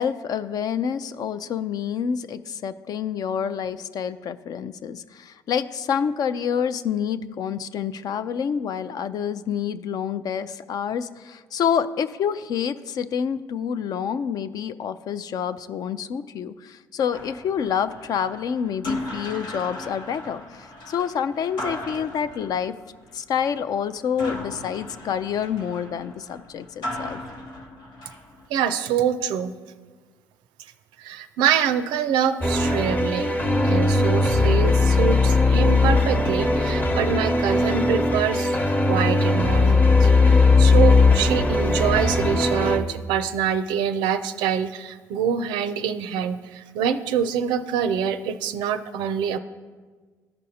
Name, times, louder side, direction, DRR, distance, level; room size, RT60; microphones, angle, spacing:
voice 1, 0.0-22.7 23.1-27.2, left 7 dB, 55° left, 13 dB, 0.4 m, -28 dB
sound 1, 17.1-28.5, left 2 dB, 80° left, 1.1 m, -36 dB
voice 2, 28.5-29.5 31.0-38.6 38.9-49.4, right 8 dB, 85° right, 11 dB, 0.4 m, -25 dB
sound 2, 32.4-42.8, left 3 dB, 20° left, 0.9 m, -19 dB
13.5 x 5.2 x 2.8 m, 1.5 s
supercardioid pair, 80°, 8 cm